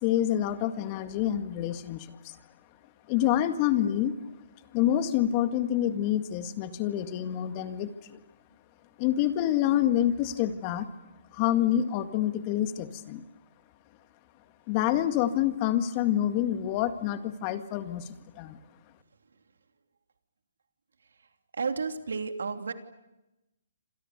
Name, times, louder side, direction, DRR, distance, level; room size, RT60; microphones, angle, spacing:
voice 1, 0.0-2.4 3.1-4.1 4.7-8.2 9.0-10.9 11.3-13.2 14.7-18.1 18.4-18.6, left 11 dB, 30° left, 9 dB, 2.0 m, -27 dB
voice 2, 21.5-22.7, right 5 dB, 80° right, 6 dB, 3.0 m, -31 dB
29.0 x 27.0 x 6.9 m, 0.96 s
hypercardioid pair, 145°, 0 cm